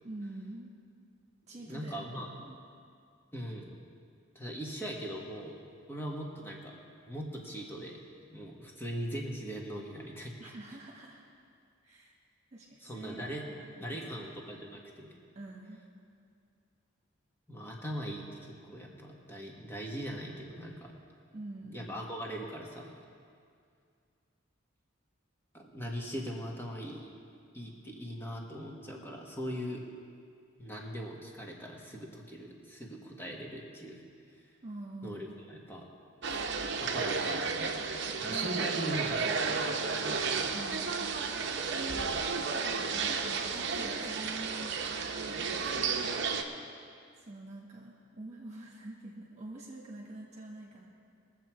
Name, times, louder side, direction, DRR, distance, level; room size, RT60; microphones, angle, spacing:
voice 1, 0.0-0.7 1.5-2.5 10.4-11.2 11.8-12.2 12.5-14.3 15.3-15.8 21.3-21.9 34.6-35.4 38.3-38.7 40.5-41.1 43.2-44.9 45.2-46.0 47.2-50.9, right 2 dB, 35° right, -2 dB, 1.7 m, -46 dB
voice 2, 1.6-2.3 3.3-3.7 4.3-5.6 5.9-6.8 7.1-8.0 8.3-10.5 12.8-13.5 13.8-15.1 17.5-20.9 21.7-23.0 25.5-27.1 27.5-29.8 30.6-34.0 35.0-35.9 36.8-37.7 38.2-40.5, equal, 10° left, -1 dB, 1.6 m, -40 dB
sound 1, 36.2-46.4, right 5 dB, 60° right, 0.9 m, -32 dB
21.5 x 7.6 x 4.7 m, 2.3 s
head